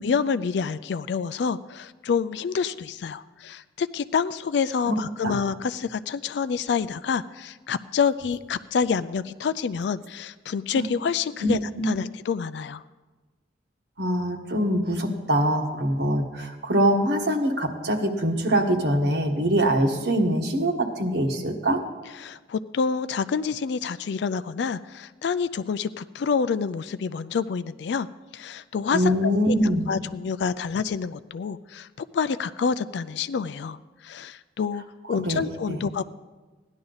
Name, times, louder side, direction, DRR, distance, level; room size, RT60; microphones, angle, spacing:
voice 1, 0.0-12.8 22.2-28.1 28.3-29.1 29.5-29.6 29.9-33.8 34.0-34.8 35.1-36.0, left 6 dB, 65° left, 13 dB, 0.3 m, -27 dB
voice 2, 11.4-11.9 14.0-21.8 28.9-29.9 35.2-35.8, equal, 65° right, 2 dB, 1.3 m, -23 dB
16.0 x 11.0 x 4.0 m, 1.3 s
head